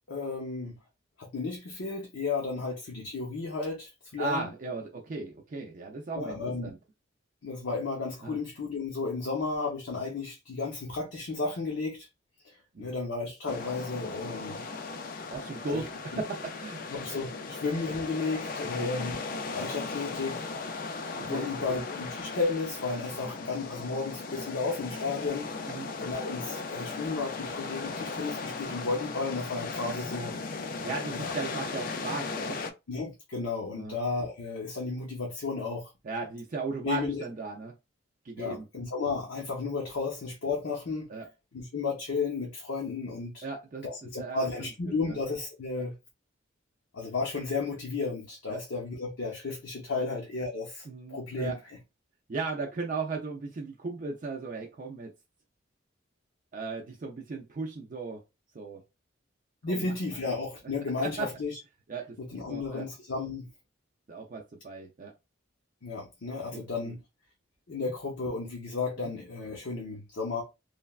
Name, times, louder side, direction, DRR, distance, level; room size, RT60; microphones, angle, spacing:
voice 1, 0.1-0.7 1.2-4.5 6.1-6.7 7.4-12.1 12.4-14.6 15.7-15.9 16.1-16.2 16.9-19.2 19.5-20.4 21.2-25.7 26.0-30.3 31.1-31.3 32.9-35.9 36.8-37.2 38.4-41.1 41.5-43.4 43.8-45.9 46.9-51.6 59.6-61.6 62.2-63.5 65.8-67.0 67.7-70.4, left 4 dB, 75° left, 0.7 m, -33 dB
voice 2, 4.2-6.8 8.2-8.4 12.7-12.9 15.3-16.8 18.8-18.9 21.2-21.8 25.7-25.9 30.8-32.6 33.7-33.9 36.0-37.7 38.2-38.7 41.1-41.3 43.4-43.8 44.2-45.2 48.5-48.6 50.9-51.6 52.3-55.1 56.5-58.2 58.5-58.8 59.7-60.2 61.0-61.3 61.9-62.8 64.1-65.1 66.5-66.9 67.8-67.9 69.0-69.1, right 3 dB, 40° right, 0.4 m, -36 dB
sound 1, 13.5-32.7, left 4 dB, 45° left, 0.3 m, -37 dB
3.2 x 2.1 x 2.3 m
head